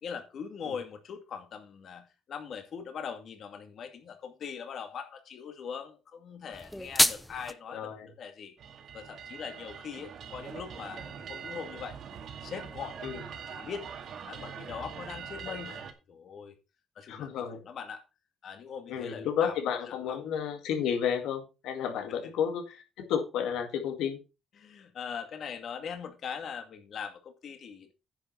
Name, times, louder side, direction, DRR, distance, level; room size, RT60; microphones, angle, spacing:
voice 1, 0.0-8.5 8.9-12.0 12.4-13.9 14.3-15.8 16.1-16.5 17.0-18.0 18.4-19.6 19.9-20.2 24.6-27.9, left 7 dB, 60° left, 2.1 m, -41 dB
sound 1, 6.5-7.5, left 1 dB, 5° left, 0.8 m, -27 dB
voice 2, 7.7-8.1 13.0-13.2 15.5-15.6 17.1-17.6 18.9-24.2, left 8 dB, 90° left, 2.1 m, -32 dB
sound 2, 8.6-15.9, right 7 dB, 65° right, 2.0 m, -43 dB
9.9 x 6.1 x 5.6 m
cardioid pair, 90°, 0 cm